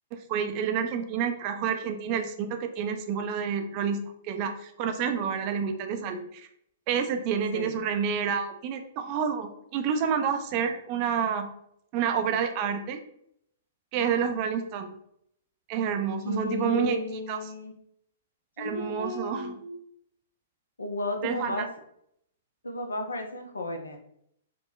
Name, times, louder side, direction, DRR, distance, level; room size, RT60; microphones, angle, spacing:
voice 1, 0.1-4.0 4.2-6.5 6.9-11.5 11.9-13.0 13.9-14.9 15.7-17.0 17.3-17.4 18.6-19.6 21.2-21.7, right 7 dB, 40° right, 6 dB, 0.3 m, -29 dB
voice 2, 7.5-7.8 16.2-17.7 18.6-19.8 20.8-21.7 22.6-24.0, left 1 dB, 80° left, 4 dB, 0.4 m, -33 dB
3.1 x 2.1 x 2.3 m, 0.72 s
figure-of-eight pair, 110°, 0 cm